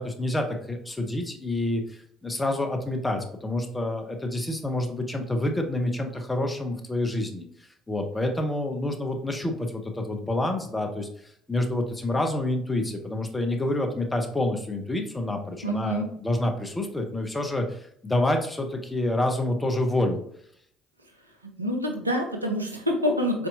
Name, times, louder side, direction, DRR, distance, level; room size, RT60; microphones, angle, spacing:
voice 1, 0.0-20.2, left 1 dB, 15° left, 3 dB, 0.8 m, -28 dB
voice 2, 15.6-16.1 21.6-23.5, equal, 90° right, 2 dB, 0.5 m, -26 dB
4.1 x 3.5 x 2.6 m, 0.68 s
figure-of-eight pair, 55°, 0 cm